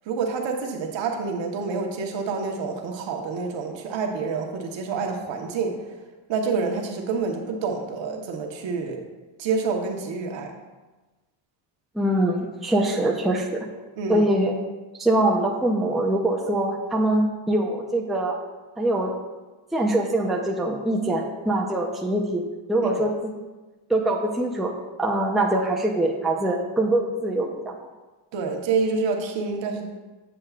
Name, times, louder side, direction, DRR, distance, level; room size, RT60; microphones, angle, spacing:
voice 1, 0.1-5.8 6.3-9.0 9.4-10.5 14.0-14.3 22.8-23.1 28.3-29.9, right 4 dB, 60° right, 2 dB, 1.3 m, -27 dB
voice 2, 11.9-13.7 14.1-14.5 15.0-18.4 18.8-19.1 19.7-23.3 23.9-24.7 25.0-27.5, right 1 dB, ahead, -1 dB, 0.7 m, -23 dB
8.0 x 7.5 x 2.4 m, 1.2 s
cardioid pair, 105°, 49 cm